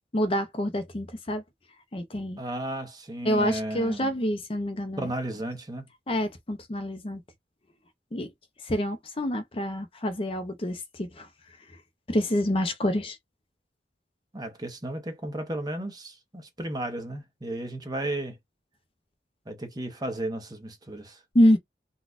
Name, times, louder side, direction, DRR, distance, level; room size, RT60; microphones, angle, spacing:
voice 1, 0.1-1.4 1.9-2.4 3.2-5.1 6.1-7.2 8.1-8.3 8.7-11.3 12.1-13.2 21.3-21.6, equal, 30° left, 0.6 m, -26 dB
voice 2, 2.4-4.1 5.0-5.9 14.3-18.4 19.5-21.2, right 1 dB, 20° right, 0.8 m, -34 dB
3.9 x 2.3 x 2.4 m
head